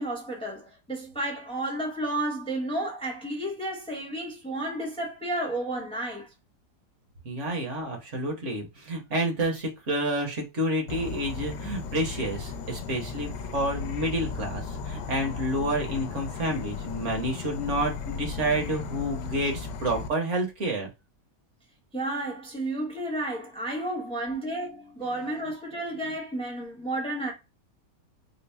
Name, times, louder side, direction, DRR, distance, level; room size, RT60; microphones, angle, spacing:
voice 1, 0.0-6.3 21.9-27.3, right 1 dB, 5° left, 0.9 m, -32 dB
voice 2, 7.2-20.9, right 1 dB, 45° right, 1.4 m, -29 dB
Insect / Frog, 10.9-20.1, left 5 dB, 85° left, 1.3 m, -36 dB
4.4 x 2.0 x 3.3 m
omnidirectional pair, 1.8 m